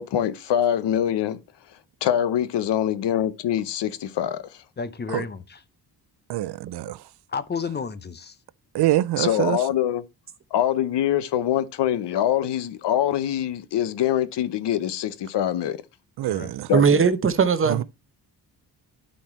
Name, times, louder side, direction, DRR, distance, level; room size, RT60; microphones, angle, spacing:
voice 1, 0.0-1.4 2.0-4.6 9.2-10.0 10.5-15.8 16.7-17.0, left 10 dB, 90° left, 1.0 m, -24 dB
voice 2, 4.8-5.6 7.3-8.4 16.2-16.5, left 5 dB, 25° left, 0.6 m, -32 dB
voice 3, 6.3-7.0 8.7-9.6 16.2-16.7 17.7-17.8, right 15 dB, 70° right, 0.5 m, -24 dB
voice 4, 16.7-17.8, right 6 dB, 30° right, 0.8 m, -19 dB
11.5 x 4.3 x 4.4 m
wide cardioid pair, 180°, 41 cm